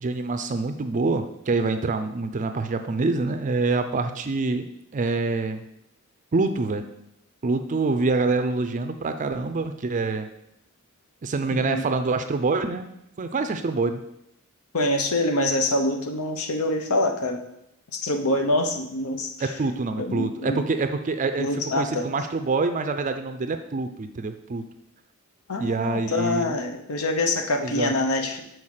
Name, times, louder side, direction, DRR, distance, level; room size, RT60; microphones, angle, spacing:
voice 1, 0.0-4.7 4.9-5.6 6.3-6.9 7.4-10.3 11.2-12.9 13.2-14.0 19.4-21.5 21.8-24.6 25.6-26.5 27.6-27.9, right 3 dB, 35° right, 8 dB, 0.4 m, -26 dB
voice 2, 11.5-11.8 14.7-17.4 17.9-19.5 20.0-20.6 21.4-22.1 25.5-28.4, left 1 dB, 75° left, 6 dB, 0.9 m, -25 dB
5.6 x 4.6 x 6.4 m, 0.80 s
head